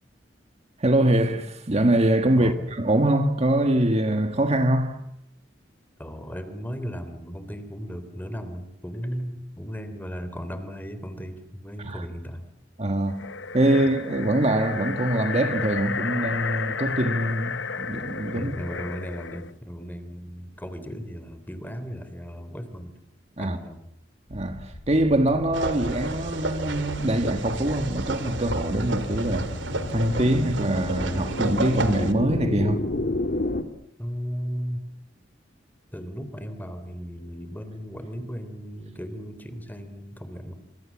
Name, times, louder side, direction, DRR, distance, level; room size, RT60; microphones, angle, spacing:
voice 1, 0.8-5.1 11.8-12.0 12.8-13.2 13.5-18.5 23.4-23.6 24.3-29.5 29.9-32.9, right 1 dB, 35° right, 1.5 m, -23 dB
voice 2, 6.0-12.5 18.3-23.0 23.4-23.8 34.0-34.8 35.9-40.5, equal, 10° left, 3.4 m, -36 dB
sound 1, 13.1-19.5, left 5 dB, 80° left, 0.9 m, -32 dB
sound 2, 24.3-33.6, left 1 dB, 55° left, 2.1 m, -33 dB
sound 3, 25.5-32.1, right 2 dB, 85° right, 2.7 m, -31 dB
27.5 x 26.5 x 7.3 m
head